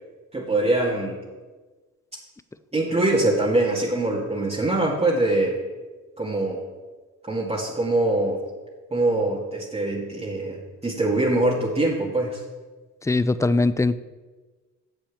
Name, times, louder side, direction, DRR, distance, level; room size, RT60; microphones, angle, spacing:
voice 1, 0.3-1.2 2.7-5.6 6.2-6.6 7.3-8.4 8.9-12.4, right 2 dB, 20° right, -4 dB, 2.0 m, -23 dB
voice 2, 13.0-14.0, left 3 dB, 10° left, 15 dB, 0.4 m, -21 dB
8.6 x 7.4 x 7.2 m, 1.3 s
cardioid pair, 90°, 30 cm